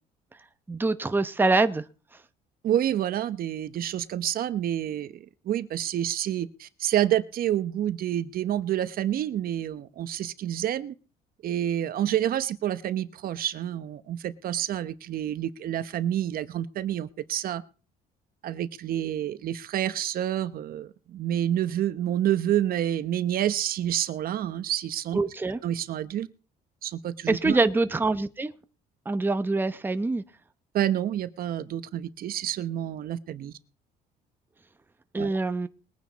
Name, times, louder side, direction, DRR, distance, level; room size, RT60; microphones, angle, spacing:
voice 1, 0.7-1.8 25.1-25.6 27.3-28.5 29.1-30.2 35.1-35.7, right 3 dB, 10° right, 10 dB, 0.8 m, -24 dB
voice 2, 2.6-10.9 11.4-17.6 18.4-25.2 25.6-26.3 26.8-27.6 30.7-33.5 35.2-35.3, right 11 dB, 60° right, 13 dB, 1.0 m, -28 dB
21.0 x 9.4 x 4.1 m, 0.36 s
cardioid pair, 110°, 17 cm